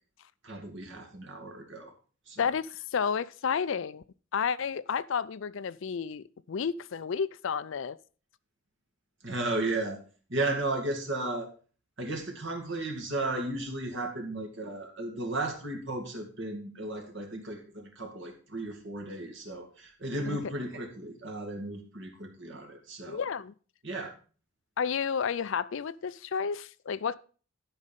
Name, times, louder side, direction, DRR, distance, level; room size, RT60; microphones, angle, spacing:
voice 1, 0.4-1.9 2.3-2.4 9.2-10.0 10.3-11.5 12.0-23.2 23.8-24.1, right 2 dB, 55° right, 2.3 m, -34 dB
voice 2, 2.4-4.0 4.3-8.0 20.3-20.4 23.1-23.5 24.8-27.2, left 6 dB, 60° left, 0.4 m, -31 dB
12.0 x 5.3 x 5.2 m
head